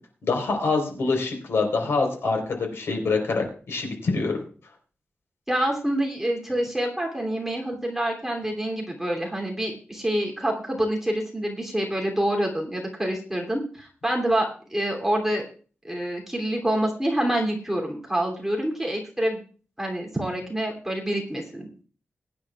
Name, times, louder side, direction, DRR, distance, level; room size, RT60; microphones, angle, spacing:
voice 1, 0.2-4.4, left 3 dB, 80° left, 2 dB, 4.1 m, -25 dB
voice 2, 5.5-15.4 15.8-19.4 19.8-21.7, right 1 dB, 10° right, 0 dB, 2.9 m, -27 dB
21.5 x 9.8 x 2.4 m, 0.41 s
wide cardioid pair, 135°, 4 cm